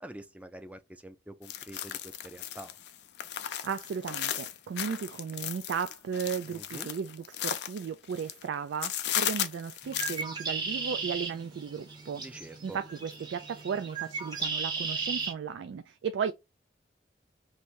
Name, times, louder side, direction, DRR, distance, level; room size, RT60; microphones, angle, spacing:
voice 1, 0.0-2.8 6.4-6.9 12.2-12.8, right 1 dB, 10° right, 0.3 m, -46 dB
sound 1, 1.4-8.5 8.8-10.2, left 10 dB, 70° left, 0.5 m, -35 dB
voice 2, 3.6-12.2 12.6-16.3, right 7 dB, 90° right, 0.3 m, -35 dB
Bird, 9.8-15.3, right 4 dB, 25° right, 0.8 m, -36 dB
3.3 x 2.6 x 4.5 m
head